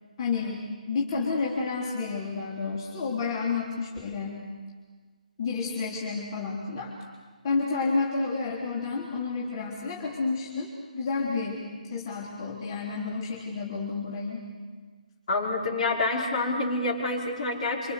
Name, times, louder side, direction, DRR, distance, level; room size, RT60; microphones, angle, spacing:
voice 1, 0.2-4.4 5.4-6.9 7.4-14.4, left 4 dB, 35° left, -3 dB, 3.6 m, -30 dB
voice 2, 15.3-17.9, left 2 dB, 55° left, 0 dB, 5.2 m, -27 dB
27.0 x 26.0 x 6.7 m, 1.5 s
hypercardioid pair, 160°, 4 cm